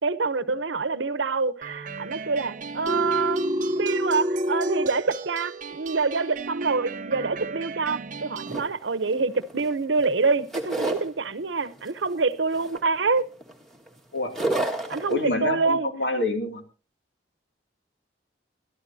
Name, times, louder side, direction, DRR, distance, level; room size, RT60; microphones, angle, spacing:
voice 1, 0.0-3.4 3.7-13.2 14.9-15.9, right 4 dB, 85° right, 0.9 m, -26 dB
sound 1, 1.6-8.6, right 4 dB, 45° right, 0.7 m, -37 dB
Telephone, 2.9-4.9, equal, 25° right, 1.1 m, -26 dB
sound 2, 8.5-9.7 10.0-11.1 11.6-12.0 12.5-13.9 14.2-15.2, right 2 dB, ahead, 1.8 m, -30 dB
voice 2, 15.1-16.6, left 2 dB, 70° left, 2.6 m, -27 dB
22.0 x 13.0 x 2.8 m
head